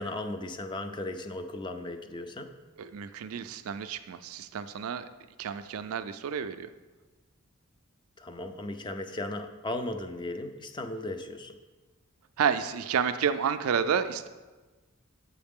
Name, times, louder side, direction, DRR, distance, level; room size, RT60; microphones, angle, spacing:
voice 1, 0.0-2.5 8.2-11.5, left 2 dB, 20° left, 7 dB, 0.4 m, -36 dB
voice 2, 2.8-5.0 5.4-6.7 12.4-14.3, right 7 dB, 75° right, 11 dB, 0.4 m, -30 dB
7.7 x 4.8 x 3.6 m, 1.2 s
head